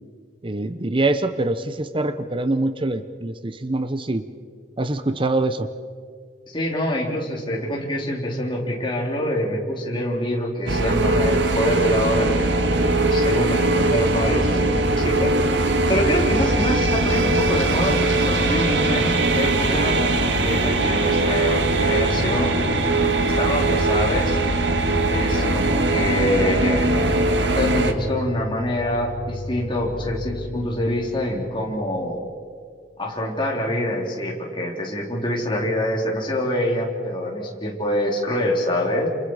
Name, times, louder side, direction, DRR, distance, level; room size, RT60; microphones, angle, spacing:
voice 1, 0.4-4.3 4.8-5.7, right 2 dB, 30° right, 10 dB, 0.8 m, -24 dB
voice 2, 6.5-15.6 15.9-19.1 19.3-20.0 20.4-22.7 23.2-24.4 25.1-27.1 27.5-32.2 33.0-39.1, left 1 dB, 25° left, -2 dB, 4.1 m, -25 dB
sound 1, 10.7-27.9, right 2 dB, 70° right, 1.8 m, -20 dB
sound 2, 16.2-32.5, left 2 dB, 45° left, 0.8 m, -34 dB
28.5 x 28.5 x 5.0 m, 2.1 s
head